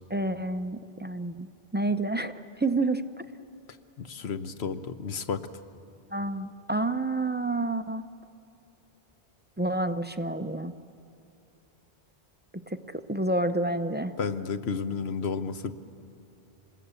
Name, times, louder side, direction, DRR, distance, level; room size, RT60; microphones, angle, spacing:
voice 1, 0.1-2.3 2.6-3.2 6.1-8.0 9.6-10.7 12.7-12.8 13.1-14.1, right 2 dB, 15° right, 8 dB, 0.4 m, -29 dB
voice 2, 4.0-5.4 14.2-15.7, left 5 dB, 85° left, 10 dB, 1.2 m, -32 dB
26.5 x 20.5 x 8.3 m, 2.6 s
omnidirectional pair, 1.0 m